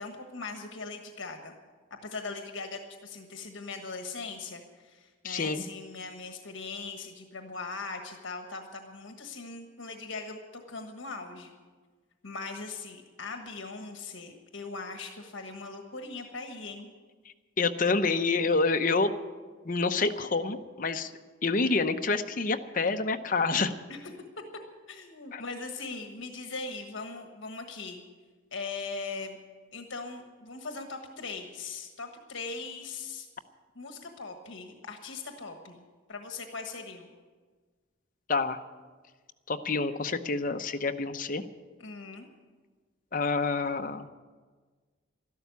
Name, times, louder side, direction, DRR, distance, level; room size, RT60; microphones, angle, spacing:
voice 1, 0.0-1.5 2.0-11.5 12.2-16.9 23.9-24.0 24.9-28.0 28.5-29.4 29.7-33.3 33.7-35.8 36.1-37.1 41.8-42.3, left 4 dB, 70° left, 5 dB, 1.3 m, -40 dB
voice 2, 5.2-5.6 17.6-19.1 19.6-21.1 21.4-23.7 25.3-25.4 38.3-38.6 39.5-41.4 43.1-44.1, left 3 dB, 40° left, 7 dB, 0.8 m, -27 dB
13.0 x 12.0 x 8.3 m, 1.4 s
head